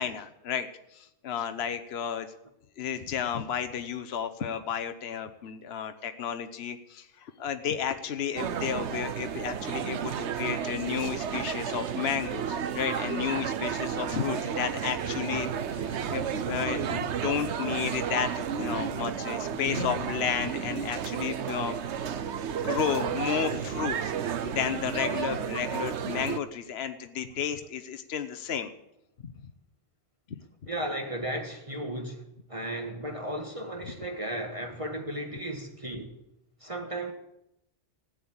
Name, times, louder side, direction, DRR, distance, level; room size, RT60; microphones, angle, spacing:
voice 1, 0.0-2.3 2.8-22.0 22.5-24.1 24.4-28.7 29.2-29.3 30.3-30.4, left 8 dB, 70° left, 1.1 m, -32 dB
sound 1, 8.4-26.4, right 8 dB, 90° right, 1.1 m, -32 dB
sound 2, 14.4-18.1, right 3 dB, 70° right, 2.2 m, -41 dB
voice 2, 30.7-32.2 32.5-36.1 36.6-37.1, right 1 dB, 30° right, 1.6 m, -35 dB
15.5 x 9.2 x 8.7 m
omnidirectional pair, 1.1 m